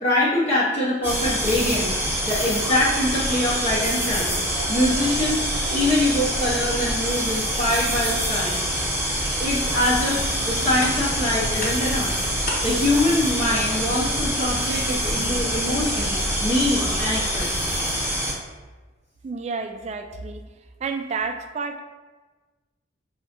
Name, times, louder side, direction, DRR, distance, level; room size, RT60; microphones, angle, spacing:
voice 1, 0.0-4.4 4.7-8.6 9.4-12.1 12.6-17.8, left 1 dB, 35° left, -7 dB, 0.6 m, -24 dB
sound 1, 1.0-18.3, equal, 10° right, 1.0 m, -25 dB
sound 2, 9.9-15.0, left 2 dB, 50° left, 1.0 m, -38 dB
sound 3, 10.1-16.2, left 1 dB, 75° left, 1.1 m, -41 dB
voice 2, 19.2-20.4 20.8-21.8, right 4 dB, 35° right, 7 dB, 0.3 m, -30 dB
5.8 x 3.1 x 2.8 m, 1.3 s
head